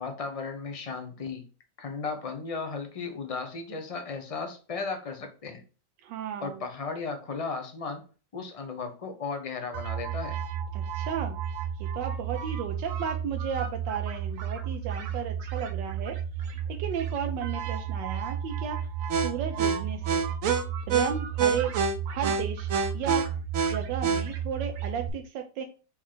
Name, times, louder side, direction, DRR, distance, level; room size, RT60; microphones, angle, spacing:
voice 1, 0.0-1.4 1.8-5.6 6.4-8.0 8.3-10.4, left 4 dB, 50° left, 5 dB, 0.4 m, -35 dB
voice 2, 6.0-6.6 10.7-11.4 11.8-16.2 16.7-18.8 19.2-20.2 20.9-21.7 22.1-23.3 23.7-25.6, right 8 dB, 85° right, 4 dB, 1.3 m, -34 dB
sound 1, 9.7-25.1, right 7 dB, 60° right, 0.9 m, -30 dB
4.5 x 3.2 x 3.7 m, 0.35 s
omnidirectional pair, 1.9 m